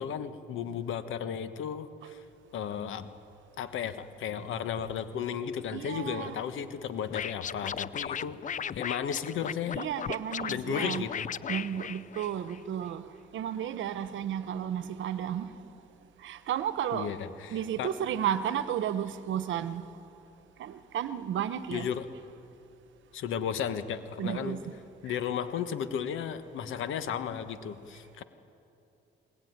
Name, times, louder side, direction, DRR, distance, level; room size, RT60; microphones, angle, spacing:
voice 1, 0.0-2.2 2.5-3.1 3.6-8.4 8.7-9.8 10.5-11.3 16.9-17.9 21.7-22.1 23.1-24.6 25.0-28.2, left 8 dB, 80° left, 1.4 m, -34 dB
voice 2, 5.7-6.4 9.8-11.1 11.5-15.5 16.2-17.1 17.5-19.9 20.6-21.9 24.2-24.7 25.1-25.2, right 9 dB, 75° right, 1.1 m, -33 dB
Scratching (performance technique), 7.1-12.6, left 8 dB, 40° left, 0.5 m, -36 dB
21.5 x 20.5 x 9.6 m
cardioid pair, 90°, 20 cm